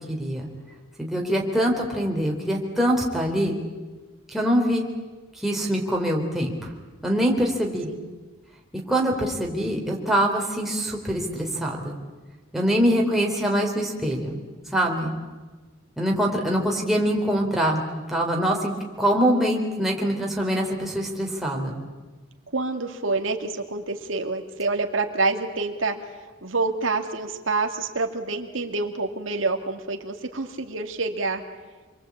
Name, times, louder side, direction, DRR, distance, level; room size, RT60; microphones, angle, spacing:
voice 1, 0.1-0.5 1.0-3.6 4.3-4.9 5.4-6.7 7.0-7.9 8.9-12.0 12.5-14.3 14.7-15.1 16.0-18.7 19.0-21.8, equal, ahead, -1 dB, 3.8 m, -24 dB
voice 2, 3.3-3.7 7.9-8.1 12.9-13.3 22.5-26.0 26.4-31.4, right 3 dB, 75° right, 4 dB, 2.2 m, -27 dB
27.5 x 22.5 x 8.6 m, 1.3 s
head